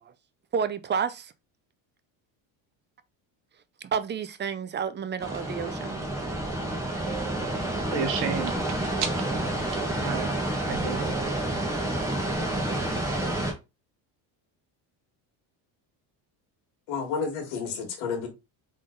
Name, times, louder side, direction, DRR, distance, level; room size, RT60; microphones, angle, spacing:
voice 1, 0.5-1.3 3.8-6.0, right 6 dB, 25° right, 0.4 m, -30 dB
sound 1, 5.2-13.5, right 1 dB, 5° right, 1.4 m, -29 dB
voice 2, 7.1-8.5 9.0-9.3 9.7-10.3 10.6-12.3, right 7 dB, 65° right, 1.3 m, -34 dB
voice 3, 16.9-18.3, left 5 dB, 75° left, 2.0 m, -31 dB
3.7 x 3.7 x 3.7 m
cardioid pair, 110°, 48 cm